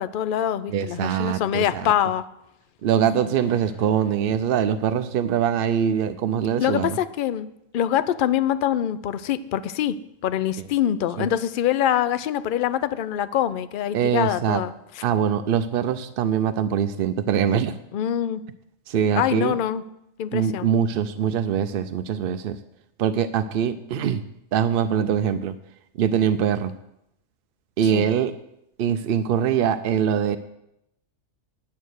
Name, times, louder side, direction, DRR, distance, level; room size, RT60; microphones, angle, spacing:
voice 1, 0.0-2.2 6.6-7.5 7.7-10.0 10.2-15.0 17.9-18.4 19.2-19.8 20.2-20.7 27.9-28.1, left 10 dB, 65° left, 13 dB, 0.5 m, -24 dB
voice 2, 0.7-1.9 2.8-7.0 11.2-11.3 13.9-14.6 15.0-17.8 18.9-19.6 20.3-22.6 23.0-24.2 24.5-25.5 26.0-26.7 27.8-28.4 28.8-30.4, right 8 dB, 65° right, 10 dB, 0.6 m, -23 dB
9.1 x 8.4 x 6.4 m, 0.82 s
omnidirectional pair, 1.4 m